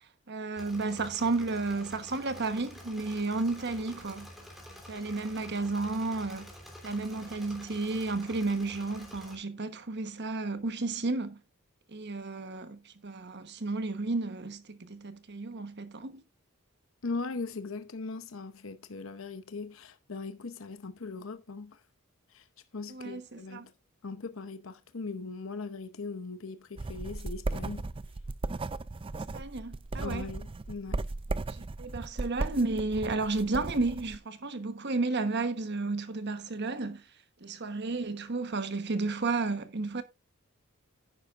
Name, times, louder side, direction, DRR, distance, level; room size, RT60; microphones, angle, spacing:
voice 1, 0.3-4.3 4.9-6.5 6.8-11.4 11.9-16.2 22.9-23.7 29.3-30.2 31.5-37.0 37.4-40.0, right 3 dB, 55° right, 1.2 m, -32 dB
Engine / Mechanisms, 0.6-9.3, equal, ahead, 3.0 m, -48 dB
voice 2, 17.0-21.8 22.3-22.4 22.7-23.7 24.0-27.9 30.0-31.1, left 4 dB, 70° left, 0.8 m, -39 dB
sound 1, 26.8-34.2, right 2 dB, 25° right, 0.4 m, -36 dB
11.0 x 10.0 x 2.5 m
head